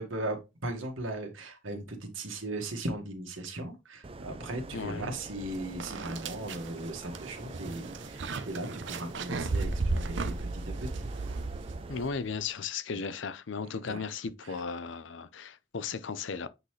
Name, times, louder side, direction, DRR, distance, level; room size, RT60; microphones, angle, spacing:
voice 1, 0.0-11.1 13.6-14.0 14.4-14.6, right 1 dB, 85° right, 1.8 m, -38 dB
sound 1, 4.0-12.1, right 2 dB, 30° right, 0.5 m, -45 dB
voice 2, 4.7-5.1 11.9-16.5, left 5 dB, 65° left, 0.6 m, -36 dB
sound 2, 5.3-5.4 5.8-12.2, right 3 dB, 65° right, 0.7 m, -34 dB
8.0 x 4.0 x 3.2 m
head